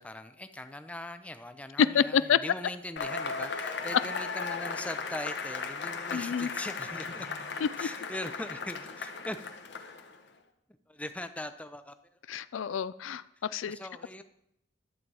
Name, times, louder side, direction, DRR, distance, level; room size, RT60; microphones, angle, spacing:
voice 1, 0.0-7.3 7.8-9.4 10.9-12.0 13.7-14.2, left 1 dB, 5° left, 9 dB, 0.5 m, -40 dB
voice 2, 1.9-2.4 6.1-6.5 7.6-7.7 12.3-13.2 13.5-13.8, left 8 dB, 75° left, 16 dB, 0.4 m, -28 dB
Cheering / Applause / Crowd, 3.0-10.2, left 4 dB, 60° left, 1.0 m, -36 dB
11.5 x 7.4 x 4.7 m, 0.79 s
head